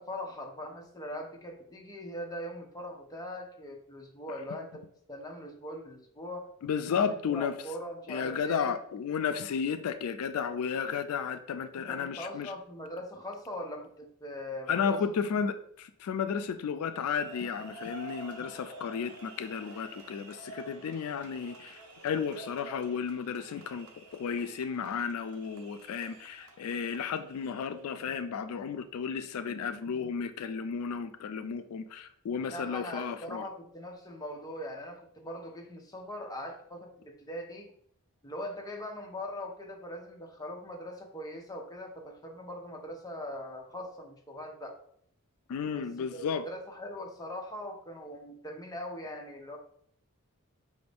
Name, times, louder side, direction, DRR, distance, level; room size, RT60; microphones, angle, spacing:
voice 1, 0.0-4.8 5.1-6.5 6.9-8.7 11.9-15.0 32.5-37.7 38.2-44.8 45.7-45.9 46.1-49.6, left 1 dB, 15° left, 1 dB, 0.6 m, -41 dB
voice 2, 6.6-7.6 8.1-12.5 14.7-23.9 24.1-33.5 45.5-46.5, left 6 dB, 80° left, 10 dB, 0.3 m, -33 dB
sound 1, 16.9-28.0, right 2 dB, 70° right, 0.7 m, -50 dB
5.0 x 2.6 x 3.4 m, 0.65 s
head